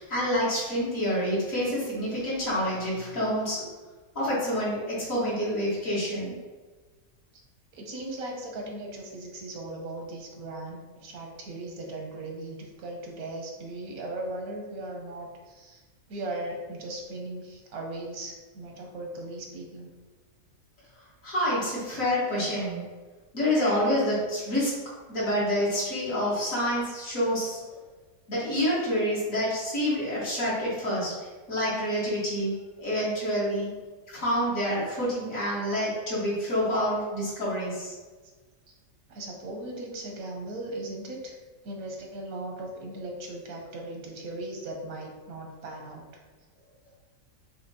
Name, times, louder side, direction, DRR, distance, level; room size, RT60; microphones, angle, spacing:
voice 1, 0.0-3.6 4.2-6.3 21.2-22.8 23.3-24.7 25.1-27.8 28.3-33.7 34.1-37.9, equal, 70° left, -8 dB, 2.1 m, -28 dB
voice 2, 7.7-15.8 16.1-19.9 38.7-38.8 39.1-41.3 41.6-46.0, right 2 dB, 90° right, 1 dB, 1.3 m, -38 dB
6.1 x 2.8 x 2.8 m, 1.3 s
omnidirectional pair, 1.5 m